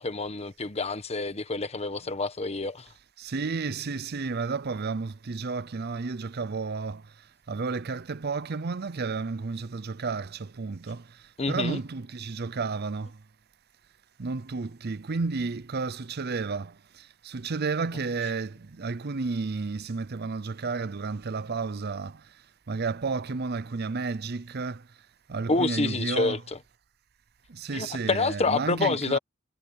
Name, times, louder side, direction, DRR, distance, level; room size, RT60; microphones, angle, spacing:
voice 1, 0.0-2.9 11.4-11.8 25.5-26.6 27.7-29.2, left 3 dB, 30° left, 1.2 m, -28 dB
voice 2, 3.2-7.0 7.5-11.0 11.5-13.1 14.2-16.7 17.3-22.1 22.7-24.8 25.3-26.4 27.5-29.2, right 4 dB, 55° right, 0.6 m, -31 dB
head